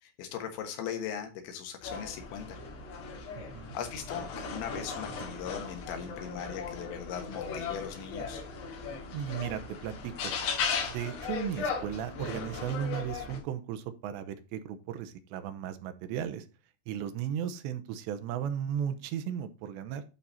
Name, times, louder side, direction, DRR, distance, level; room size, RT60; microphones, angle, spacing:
voice 1, 0.0-2.6 3.8-8.4, left 8 dB, 85° left, 5 dB, 3.7 m, -39 dB
sound 1, 1.8-13.4, left 5 dB, 70° left, 4.5 m, -37 dB
voice 2, 3.4-3.7 9.1-10.3 10.9-16.5 16.9-20.0, right 9 dB, 85° right, 10 dB, 3.0 m, -35 dB
11.5 x 4.3 x 4.0 m, 0.33 s
omnidirectional pair, 5.1 m